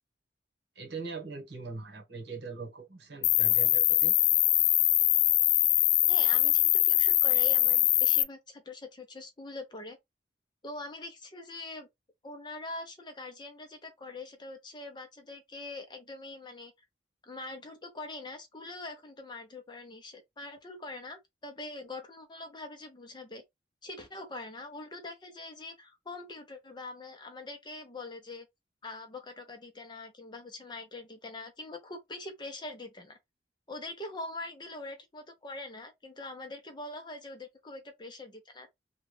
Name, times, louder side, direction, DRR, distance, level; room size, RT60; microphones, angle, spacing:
voice 1, 0.7-4.1, right 4 dB, 70° right, 1.3 m, -41 dB
Cricket, 3.2-8.2, left 15 dB, 65° left, 0.3 m, -23 dB
voice 2, 6.1-10.0 10.6-11.9 12.2-16.7 17.2-23.4 23.8-28.5 28.8-33.2 33.7-38.7, left 2 dB, 25° left, 0.7 m, -43 dB
3.3 x 2.4 x 3.2 m
head